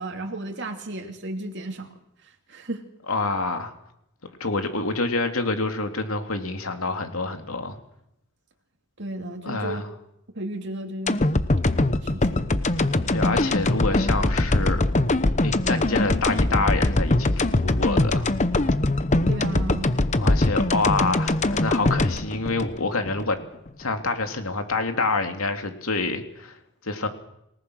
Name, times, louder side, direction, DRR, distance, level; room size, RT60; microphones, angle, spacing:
voice 1, 0.0-2.8 9.0-9.8 10.3-11.4 12.0-12.6 19.3-20.0, right 1 dB, 55° right, 4 dB, 2.9 m, -34 dB
voice 2, 3.1-3.7 4.4-7.8 9.4-9.9 13.1-14.8 15.4-18.3 20.2-23.4 23.8-26.6 26.8-27.1, left 3 dB, 80° left, 6 dB, 2.8 m, -27 dB
sound 1, 11.1-23.3 23.7-23.8, left 2 dB, 35° left, 0.9 m, -22 dB
28.0 x 18.5 x 6.4 m, 0.80 s
head